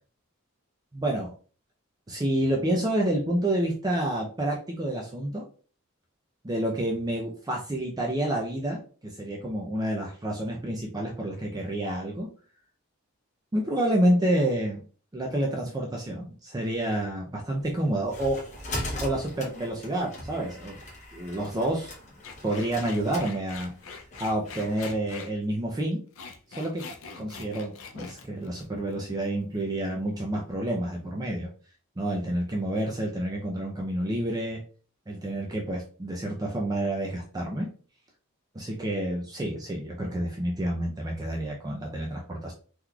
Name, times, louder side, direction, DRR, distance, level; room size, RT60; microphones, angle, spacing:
voice 1, 0.9-1.3 2.1-5.4 6.4-12.3 13.5-14.8 15.1-18.4 19.0-20.8 21.1-21.9 22.4-23.7 24.2-26.0 26.5-26.8 27.2-31.5 32.0-34.6 35.1-37.7 38.5-42.5, right 1 dB, 20° right, -1 dB, 0.5 m, -29 dB
sound 1, 17.6-25.0, left 1 dB, 35° left, 0.9 m, -39 dB
sound 2, 22.2-25.3 25.9-29.3 29.5-29.9, left 5 dB, 65° left, 0.5 m, -43 dB
3.7 x 3.0 x 2.3 m, 0.40 s
head